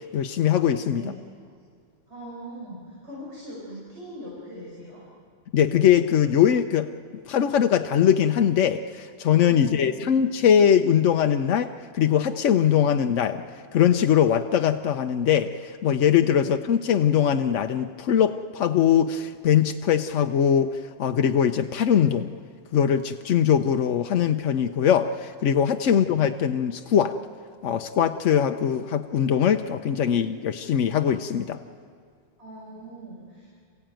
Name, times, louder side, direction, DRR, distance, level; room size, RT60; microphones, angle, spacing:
voice 1, 0.1-1.0 5.5-6.9 7.3-13.4 13.7-22.3 22.7-27.2 27.6-31.6, left 9 dB, 80° left, 6 dB, 1.1 m, -21 dB
voice 2, 0.9-1.4 2.1-5.0 9.5-10.1 16.3-16.5 25.8-26.0 32.4-33.5, right 1 dB, 65° right, -6 dB, 5.8 m, -41 dB
27.5 x 16.0 x 9.0 m, 2.2 s
omnidirectional pair, 1.3 m